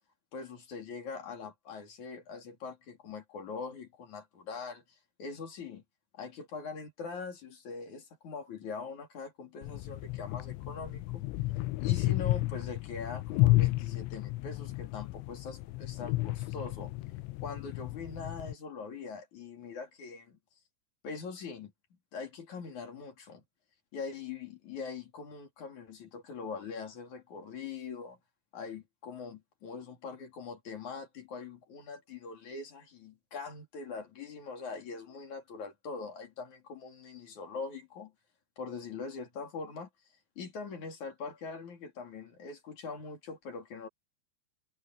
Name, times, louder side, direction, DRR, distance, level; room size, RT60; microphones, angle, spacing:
voice 1, 0.3-4.8 5.2-5.8 6.1-11.2 11.8-16.9 17.4-20.4 21.0-21.7 22.1-23.4 23.9-28.2 28.5-38.1 38.6-39.9 40.4-43.9, left 5 dB, 45° left, 4.0 m, -42 dB
sound 1, 9.6-18.5, left 19 dB, 85° left, 3.0 m, -32 dB
omnidirectional pair, 5.3 m